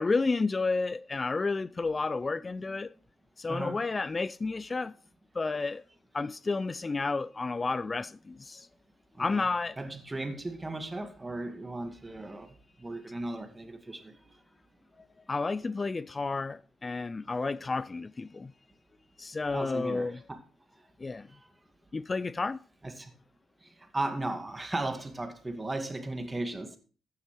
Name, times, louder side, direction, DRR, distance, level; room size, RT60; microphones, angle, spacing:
voice 1, 0.0-2.9 3.4-4.9 5.3-5.8 6.1-8.7 9.2-9.8 15.3-18.5 19.2-20.2 21.0-21.3 21.9-22.6, left 3 dB, 35° left, 0.4 m, -31 dB
voice 2, 3.5-3.8 9.2-9.4 9.8-14.3 19.5-20.4 22.8-23.1 23.6-26.8, right 2 dB, 25° right, 2.1 m, -36 dB
14.0 x 9.5 x 3.2 m
hypercardioid pair, 40°, 0 cm